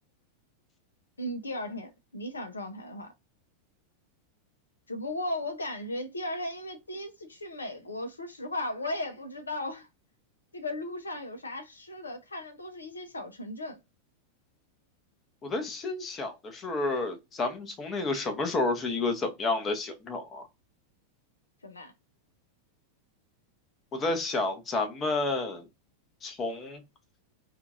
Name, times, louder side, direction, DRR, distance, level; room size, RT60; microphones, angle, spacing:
voice 1, 1.2-3.1 4.9-9.9 10.5-13.8 21.6-21.9, left 1 dB, 75° left, 0.5 m, -36 dB
voice 2, 15.4-20.5 23.9-25.7 26.2-26.8, left 3 dB, 25° left, 0.8 m, -30 dB
3.6 x 2.4 x 2.4 m
figure-of-eight pair, 90°, 0 cm